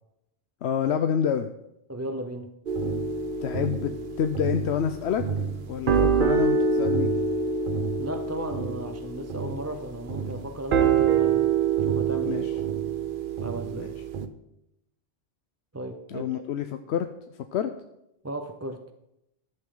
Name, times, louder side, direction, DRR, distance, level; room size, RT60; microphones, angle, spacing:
voice 1, 0.6-1.5 3.4-5.3 5.7-7.1 12.2-12.5 13.7-13.9 16.1-17.1 17.3-17.7, left 8 dB, 85° left, 8 dB, 0.9 m, -28 dB
voice 2, 1.9-2.6 8.0-11.5 11.8-12.7 13.4-13.9 15.7-16.5 18.2-18.8, right 1 dB, 15° right, 7 dB, 0.6 m, -36 dB
sound 1, 2.7-14.3, right 6 dB, 55° right, 0.9 m, -26 dB
13.5 x 12.0 x 3.8 m, 0.84 s
omnidirectional pair, 1.1 m